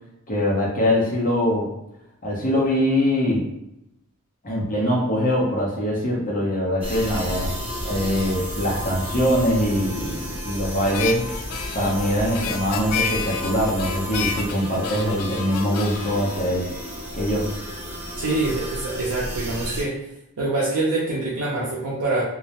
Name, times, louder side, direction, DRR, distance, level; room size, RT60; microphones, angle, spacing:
voice 1, 0.3-1.7 2.2-3.5 4.4-7.6 7.8-11.3 11.7-16.7 17.1-17.5, equal, 35° left, -3 dB, 0.7 m, -23 dB
sound 1, 6.8-19.8, equal, 25° right, 0.6 m, -32 dB
Harmonica, 10.8-17.3, left 6 dB, 80° left, 0.3 m, -31 dB
voice 2, 18.2-20.0 20.4-22.2, right 2 dB, 90° right, -7 dB, 0.5 m, -25 dB
2.2 x 2.0 x 2.8 m, 0.83 s
head